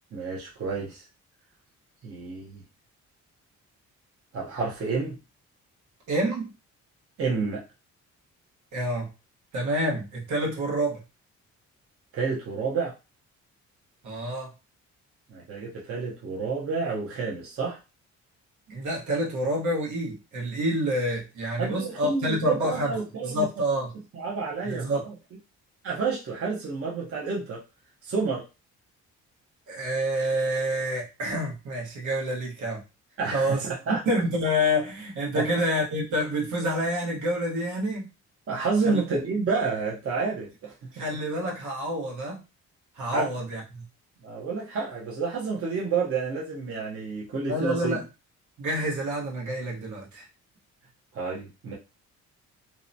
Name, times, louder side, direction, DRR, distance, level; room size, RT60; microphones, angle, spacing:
voice 1, 0.1-1.0 2.0-2.6 4.3-5.2 7.2-7.6 12.1-12.9 15.3-17.8 21.6-23.4 24.1-24.9 25.8-27.6 28.0-28.4 33.2-34.0 35.3-35.4 38.5-40.7 43.1-43.3 44.2-48.0 51.1-51.7, right 4 dB, 50° right, -3 dB, 0.8 m, -29 dB
voice 2, 6.1-6.5 8.7-9.1 9.5-11.0 14.0-14.5 18.7-23.0 23.2-23.9 24.6-25.1 29.7-32.8 33.3-38.1 38.8-39.0 40.9-42.4 43.0-43.8 47.4-48.0 48.6-50.3, equal, 75° right, -2 dB, 1.2 m, -28 dB
2.8 x 2.1 x 2.6 m, 0.28 s
cardioid pair, 90°, 30 cm